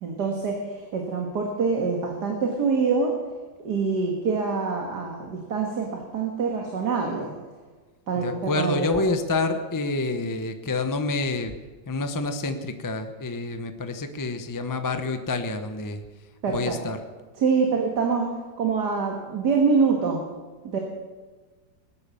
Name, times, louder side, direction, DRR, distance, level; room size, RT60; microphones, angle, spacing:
voice 1, 0.0-3.2 3.6-7.3 8.1-9.0 16.4-16.8 17.4-18.3 18.6-20.2 20.6-20.8, right 5 dB, 60° right, 1 dB, 2.3 m, -25 dB
voice 2, 8.1-11.5 11.9-16.0 16.5-17.0, left 3 dB, 20° left, 7 dB, 0.5 m, -28 dB
19.5 x 10.5 x 7.0 m, 1.3 s
omnidirectional pair, 2.1 m